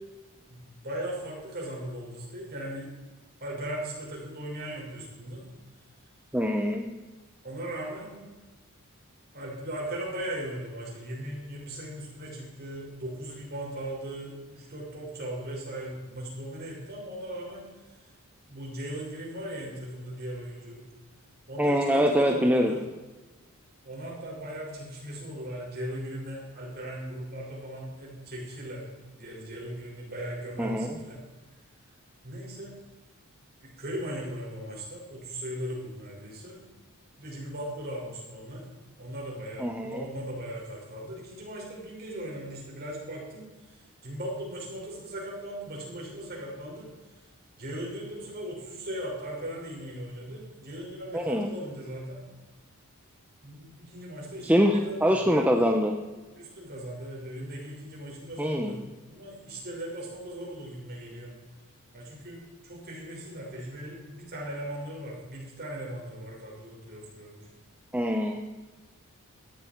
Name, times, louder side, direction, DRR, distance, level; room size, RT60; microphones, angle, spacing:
voice 1, 0.5-2.9 3.4-5.5 7.4-8.3 9.3-18.0 18.5-20.9 21.5-22.8 23.8-31.2 32.2-32.8 33.6-36.6 37.2-38.7 39.0-43.8 44.0-46.9 47.6-52.3 53.4-55.8 56.3-58.8 59.1-61.3 61.9-67.5, right 1 dB, 45° right, -3 dB, 6.0 m, -38 dB
voice 2, 6.3-6.9 21.6-22.7 30.6-30.9 39.6-40.0 51.1-51.5 54.4-55.9 58.4-58.7 67.9-68.4, equal, 5° right, 2 dB, 0.9 m, -24 dB
17.5 x 14.0 x 4.6 m, 1.2 s
head